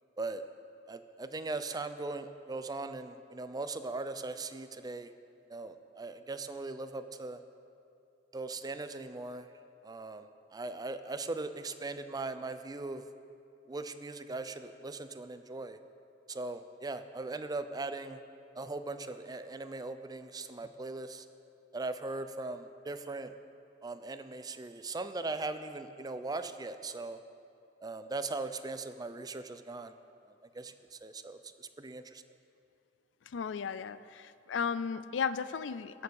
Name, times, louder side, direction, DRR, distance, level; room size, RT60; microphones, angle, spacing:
voice 1, 0.9-5.1 5.5-7.4 8.3-9.5 9.8-13.0 13.7-15.8 16.3-18.2 18.5-21.3 21.7-23.3 23.8-27.2 27.8-29.9 30.5-32.2, right 3 dB, 20° right, 10 dB, 0.5 m, -39 dB
voice 2, 33.3-36.0, left 6 dB, 85° left, 15 dB, 0.4 m, -35 dB
16.0 x 6.9 x 7.0 m, 2.5 s
head